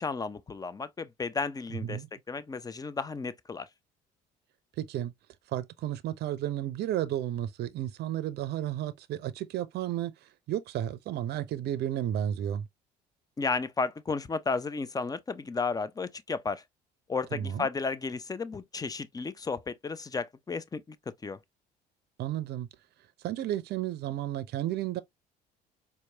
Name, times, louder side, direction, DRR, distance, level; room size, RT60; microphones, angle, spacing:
voice 1, 0.0-3.7 13.4-16.6 17.1-21.0 21.2-21.4, left 4 dB, 20° left, 0.6 m, -33 dB
voice 2, 4.8-5.1 5.5-10.1 10.5-12.7 17.3-17.7 22.2-22.7 23.2-25.0, right 11 dB, 60° right, 0.6 m, -32 dB
4.4 x 2.2 x 2.8 m
hypercardioid pair, 70°, 20 cm